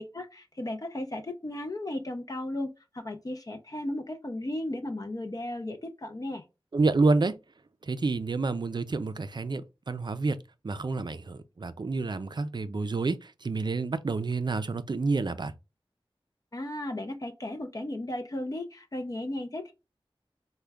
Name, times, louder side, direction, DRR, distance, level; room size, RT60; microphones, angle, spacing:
voice 1, 0.0-6.4 16.5-19.7, left 1 dB, 40° left, 0.5 m, -35 dB
voice 2, 6.7-7.3 7.8-10.4 10.6-15.5, right 3 dB, 50° right, 0.4 m, -28 dB
3.5 x 2.2 x 3.3 m
wide cardioid pair, 60°, 10 cm